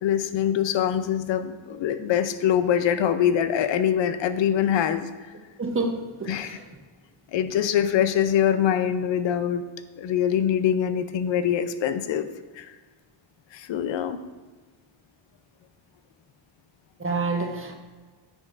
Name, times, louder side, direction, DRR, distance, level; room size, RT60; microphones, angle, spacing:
voice 1, 0.0-5.1 6.3-6.6 7.3-9.6 10.0-12.3 12.6-12.7 13.5-14.2, left 9 dB, 65° left, 11 dB, 0.6 m, -24 dB
voice 2, 5.6-6.7 17.0-17.7, right 3 dB, 25° right, 3 dB, 0.8 m, -28 dB
9.5 x 6.4 x 2.5 m, 1.4 s
wide cardioid pair, 150°, 48 cm